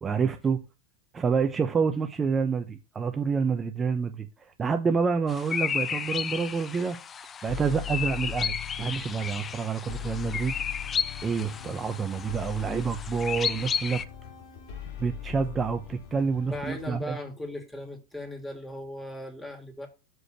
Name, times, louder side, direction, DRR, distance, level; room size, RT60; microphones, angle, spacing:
voice 1, 0.0-0.6 1.1-4.3 4.6-7.0 7.4-10.5 11.2-14.0 15.0-17.2, right 5 dB, 25° right, 0.9 m, -28 dB
sound 1, 5.2-5.5 7.5-9.5 9.9-17.0, left 10 dB, 55° left, 3.2 m, -40 dB
sound 2, 5.3-14.0, left 7 dB, 25° left, 0.5 m, -33 dB
voice 2, 16.4-19.9, left 1 dB, 10° left, 2.9 m, -38 dB
6.3 x 5.0 x 6.6 m
hypercardioid pair, 90°, 0 cm